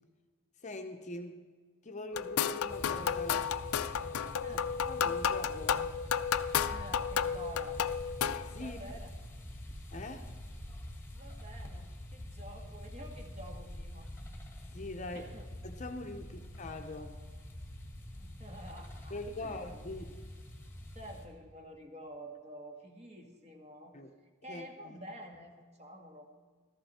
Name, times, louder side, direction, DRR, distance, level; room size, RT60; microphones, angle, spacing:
voice 1, 0.6-1.4 1.8-3.6 4.8-5.9 8.4-8.8 9.9-10.2 14.7-15.3 15.6-17.2 19.1-20.2 23.9-24.1 24.5-25.0, left 2 dB, 35° left, 5 dB, 0.8 m, -43 dB
sound 1, 2.1-8.6, left 7 dB, 85° left, 0.5 m, -32 dB
sound 2, 2.7-21.3, left 1 dB, 10° left, 1.5 m, -46 dB
voice 2, 6.5-7.8 8.6-9.1 11.1-14.1 15.1-15.5 16.3-16.4 18.2-19.7 20.9-23.9 24.4-26.3, right 1 dB, 30° right, 2 dB, 1.6 m, -49 dB
15.0 x 13.5 x 4.3 m, 1.5 s
head